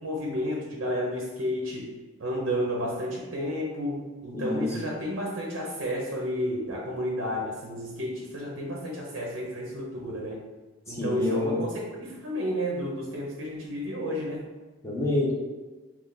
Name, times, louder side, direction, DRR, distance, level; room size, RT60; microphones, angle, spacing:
voice 1, 0.0-1.9 2.2-10.4 10.9-14.4, equal, 60° right, -1 dB, 0.6 m, -31 dB
voice 2, 4.3-4.8 10.9-11.6 14.8-15.3, left 2 dB, 15° left, -4 dB, 0.6 m, -27 dB
3.2 x 2.3 x 3.8 m, 1.3 s
head